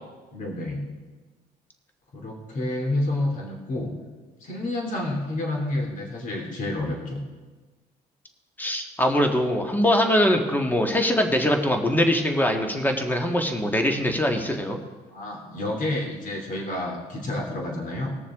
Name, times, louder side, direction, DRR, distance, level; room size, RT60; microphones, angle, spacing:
voice 1, 0.3-0.9 2.1-3.9 4.4-7.2 15.1-18.2, left 1 dB, 50° left, 0 dB, 2.9 m, -29 dB
voice 2, 8.6-14.8, left 1 dB, 10° left, 3 dB, 1.6 m, -22 dB
20.5 x 7.0 x 3.6 m, 1.3 s
cardioid pair, 110°, 17 cm